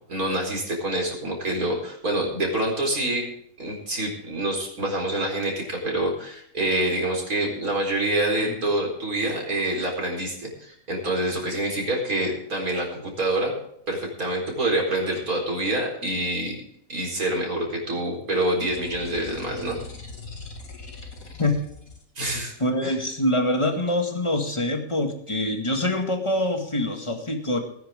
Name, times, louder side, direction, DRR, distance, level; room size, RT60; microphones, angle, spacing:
voice 1, 0.1-3.2 3.6-13.5 13.9-16.6 16.9-19.8 22.2-22.5 22.8-23.0, right 1 dB, 80° right, 0 dB, 4.8 m, -26 dB
sound 1, 18.7-22.0, left 3 dB, 70° left, 2.6 m, -41 dB
voice 2, 22.6-27.6, left 1 dB, 20° left, 4 dB, 2.0 m, -25 dB
19.0 x 10.5 x 3.7 m, 0.69 s
omnidirectional pair, 1.5 m